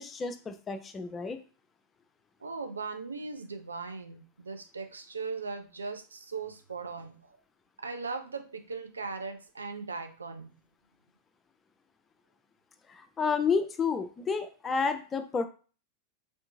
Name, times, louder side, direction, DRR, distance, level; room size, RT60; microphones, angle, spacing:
voice 1, 0.0-1.4 12.9-15.5, left 5 dB, 20° left, 8 dB, 0.4 m, -30 dB
voice 2, 2.4-7.4 7.8-10.5, right 4 dB, 75° right, 8 dB, 0.3 m, -39 dB
3.3 x 2.7 x 2.6 m, 0.37 s
figure-of-eight pair, 90°, 0 cm